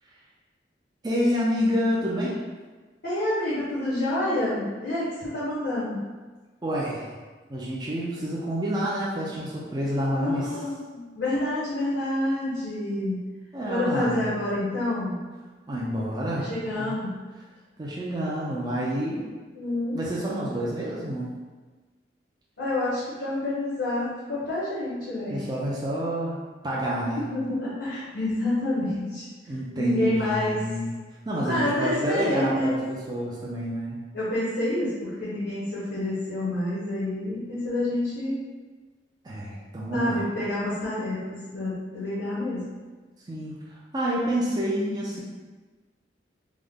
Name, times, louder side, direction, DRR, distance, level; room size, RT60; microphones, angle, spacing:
voice 1, 1.0-2.3 6.6-7.1 7.5-10.5 13.5-14.3 15.7-16.5 16.8-17.0 17.8-19.3 19.9-21.3 25.3-26.4 26.6-27.2 29.5-30.9 31.3-34.0 39.2-40.2 43.3-45.2, equal, 25° right, -5 dB, 0.4 m, -28 dB
voice 2, 3.0-6.0 10.2-13.2 13.7-15.2 16.3-17.2 19.5-20.0 22.6-25.4 27.3-29.3 29.8-30.6 31.4-32.8 34.1-38.4 39.9-42.7, left 1 dB, 80° left, -10 dB, 1.0 m, -28 dB
3.5 x 2.1 x 3.5 m, 1.3 s
head